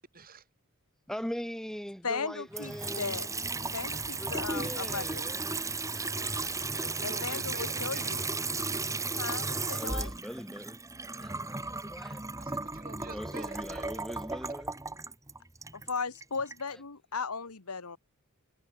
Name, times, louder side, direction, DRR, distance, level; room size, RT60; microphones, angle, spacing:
voice 1, 0.1-0.4 7.0-8.3 12.4-14.0, right 4 dB, 40° right, 7.0 m, -48 dB
voice 2, 1.1-3.2 4.2-6.8 7.2-7.5 7.9-8.0 9.3-10.8 11.2-12.2 13.1-14.7 16.7-16.8, equal, ahead, 2.0 m, -42 dB
voice 3, 2.0-3.3 3.7-5.2 7.0-8.2 9.2-10.1 15.7-18.0, left 5 dB, 80° left, 1.6 m, -36 dB
Water tap faucet / Sink (filling or washing) / Trickle dribble, 2.5-16.6, right 3 dB, 15° right, 1.5 m, -35 dB
head